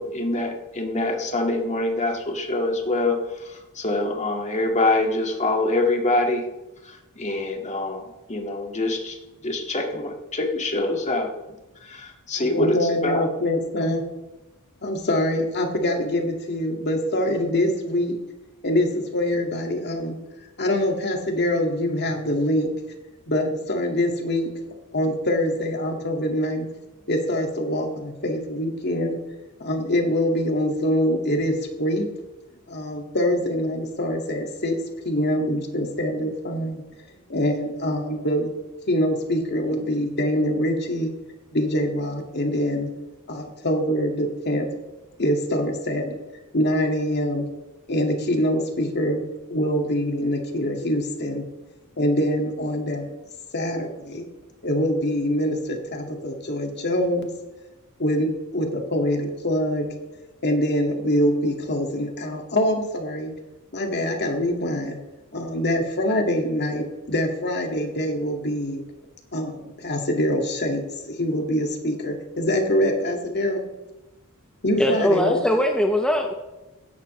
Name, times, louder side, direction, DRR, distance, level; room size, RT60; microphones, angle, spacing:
voice 1, 0.0-6.5 6.8-9.2 9.4-11.3 11.8-13.3, left 2 dB, 35° left, 2 dB, 1.9 m, -25 dB
voice 2, 12.4-14.0 14.8-18.2 18.6-20.2 20.6-22.7 23.3-24.5 24.9-26.7 27.1-29.2 29.6-32.1 32.7-34.8 35.1-36.8 37.3-38.5 38.9-41.1 41.5-42.9 43.3-44.7 45.2-46.1 46.5-47.4 47.9-49.2 49.5-51.4 52.0-53.1 53.5-54.2 54.6-57.3 58.0-59.9 60.4-63.3 63.7-65.0 65.3-68.8 69.3-73.6 74.6-75.4, left 1 dB, 50° left, 2 dB, 2.1 m, -24 dB
voice 3, 74.8-76.3, equal, 5° left, 2 dB, 0.8 m, -21 dB
15.5 x 11.5 x 3.2 m, 1.0 s
head